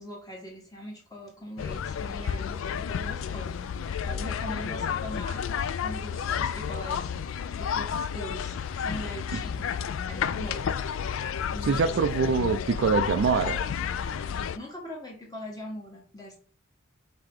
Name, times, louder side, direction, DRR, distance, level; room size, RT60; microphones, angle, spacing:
voice 1, 0.0-10.7 11.2-12.3 14.2-16.4, equal, 20° left, 1.1 m, -42 dB
sound 1, 1.6-14.6, left 7 dB, 65° left, 0.3 m, -31 dB
voice 2, 11.6-13.6, right 5 dB, 55° right, 0.3 m, -24 dB
4.8 x 2.9 x 3.6 m
head